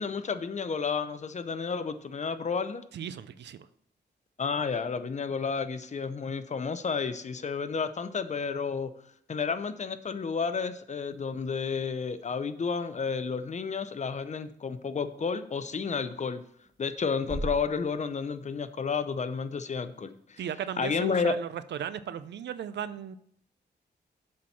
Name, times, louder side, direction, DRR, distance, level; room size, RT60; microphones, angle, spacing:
voice 1, 0.0-2.8 4.4-8.9 9.3-16.4 16.8-20.4 20.8-21.3, left 5 dB, 40° left, 11 dB, 0.6 m, -31 dB
voice 2, 2.9-3.7 20.4-23.2, right 9 dB, 85° right, 14 dB, 0.5 m, -36 dB
sound 1, 11.0-20.3, right 2 dB, 20° right, 1.2 m, -47 dB
7.5 x 4.4 x 5.6 m, 0.67 s
cardioid pair, 80°, 18 cm